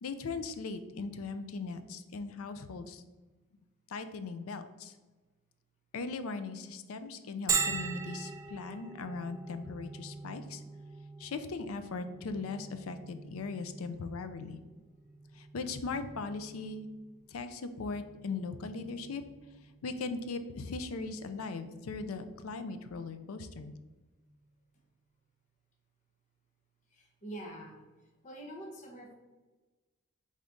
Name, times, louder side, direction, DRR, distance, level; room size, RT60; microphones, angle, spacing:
voice 1, 0.0-3.0 3.9-4.9 5.9-10.6 11.2-14.6 15.3-16.9 17.3-19.2 19.8-23.7, left 4 dB, 80° left, 10 dB, 0.4 m, -39 dB
Bell, 7.5-22.9, right 5 dB, 15° right, 0.3 m, -42 dB
voice 2, 26.9-27.8 28.2-29.1, right 1 dB, 35° left, 0 dB, 0.7 m, -45 dB
4.0 x 3.5 x 3.8 m, 1.2 s
head